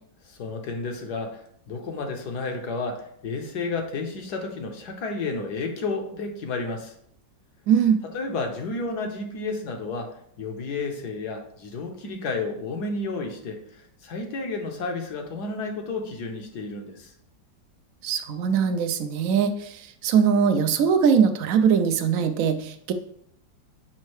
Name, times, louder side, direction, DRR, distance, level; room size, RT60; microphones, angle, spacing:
voice 1, 0.2-6.9 8.0-17.1, left 3 dB, 65° left, 3 dB, 1.4 m, -32 dB
voice 2, 7.7-8.0 18.0-22.9, right 7 dB, 65° right, 8 dB, 0.8 m, -21 dB
7.4 x 5.4 x 3.1 m, 0.68 s
omnidirectional pair, 2.0 m